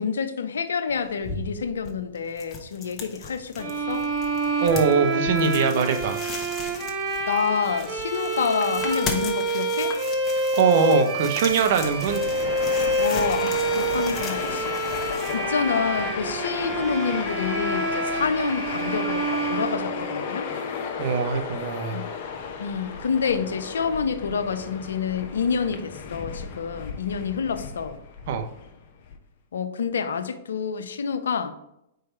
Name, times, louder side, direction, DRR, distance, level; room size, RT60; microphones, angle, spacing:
voice 1, 0.0-4.1 7.3-10.0 13.0-14.8 15.3-20.5 21.9-22.1 22.6-28.0 29.5-31.5, left 6 dB, 75° left, 0.6 m, -28 dB
sound 1, 0.9-16.0, left 4 dB, 25° left, 1.1 m, -38 dB
sound 2, 3.6-20.4, right 2 dB, 30° right, 1.6 m, -27 dB
voice 2, 4.6-6.2 10.5-12.2 21.0-22.0 28.3-28.4, right 6 dB, 55° right, 0.9 m, -22 dB
Train, 11.6-29.2, left 6 dB, 50° left, 0.9 m, -34 dB
4.7 x 4.7 x 4.5 m
hypercardioid pair, 115°, 0 cm